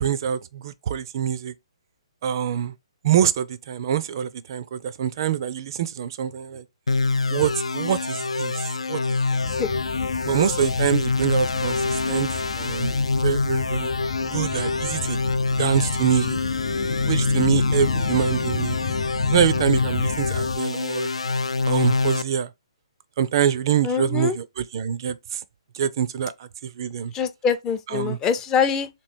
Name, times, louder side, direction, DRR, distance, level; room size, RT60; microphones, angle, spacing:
voice 1, 0.0-1.5 2.2-2.7 3.0-6.6 7.3-9.4 10.2-13.9 14.2-15.2 15.5-16.4 17.0-18.8 19.3-21.1 21.7-22.5 23.2-25.4 25.7-27.1 27.9-28.2, right 9 dB, 45° right, 0.4 m, -25 dB
sound 1, 6.9-22.2, left 3 dB, 85° left, 0.3 m, -25 dB
sound 2, 9.4-20.6, left 6 dB, 55° left, 0.8 m, -31 dB
voice 2, 23.8-24.3 27.1-28.9, left 6 dB, 20° left, 0.4 m, -24 dB
3.1 x 2.9 x 4.2 m
figure-of-eight pair, 135°, 3 cm